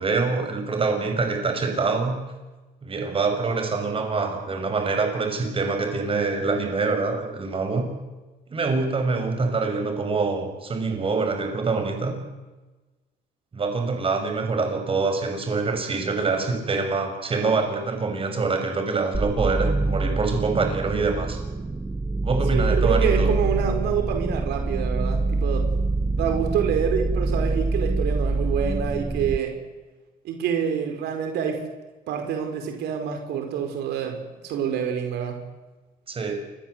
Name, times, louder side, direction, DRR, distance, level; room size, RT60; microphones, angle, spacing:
voice 1, 0.0-2.2 2.8-7.9 8.5-12.2 13.5-21.4 22.2-23.3 36.1-36.4, right 4 dB, 35° right, 5 dB, 6.5 m, -25 dB
sound 1, 19.1-29.4, right 3 dB, 15° right, 1.0 m, -25 dB
voice 2, 22.5-25.7 26.2-29.5 30.2-31.6 32.1-35.4, right 8 dB, 80° right, 5 dB, 4.9 m, -27 dB
28.0 x 21.0 x 8.1 m, 1.2 s
cardioid pair, 110°, 17 cm